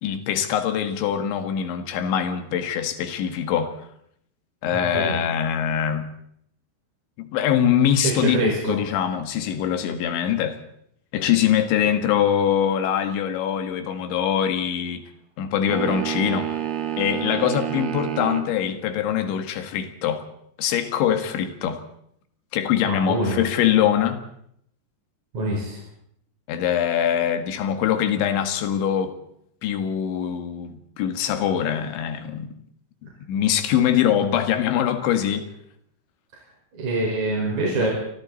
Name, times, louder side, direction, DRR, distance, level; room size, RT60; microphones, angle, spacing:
voice 1, 0.0-3.8 4.6-6.1 7.2-10.6 11.1-15.0 15.4-16.6 17.0-20.2 20.6-21.8 22.5-24.2 26.5-29.1 29.6-32.5 33.3-35.5 37.8-37.9, left 9 dB, 80° left, 4.0 m, -23 dB
voice 2, 8.0-8.8 22.8-23.4 25.3-25.8 36.8-37.9, right 2 dB, 40° right, 6.1 m, -24 dB
sound 1, 15.7-18.5, right 11 dB, 65° right, 3.8 m, -28 dB
29.5 x 24.0 x 4.1 m
omnidirectional pair, 5.2 m